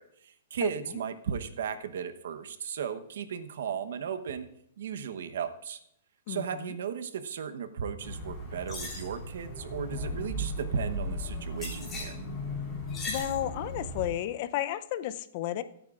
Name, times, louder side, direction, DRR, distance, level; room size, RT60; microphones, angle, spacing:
voice 1, 0.0-4.5 4.8-5.8 6.3-12.2, right 7 dB, 75° right, 10 dB, 1.0 m, -35 dB
voice 2, 6.3-6.7 13.0-15.6, left 12 dB, 40° left, 14 dB, 0.5 m, -33 dB
sound 1, 8.0-14.1, left 1 dB, 15° left, 3.5 m, -36 dB
22.5 x 8.9 x 2.5 m, 0.73 s
hypercardioid pair, 160°, 0 cm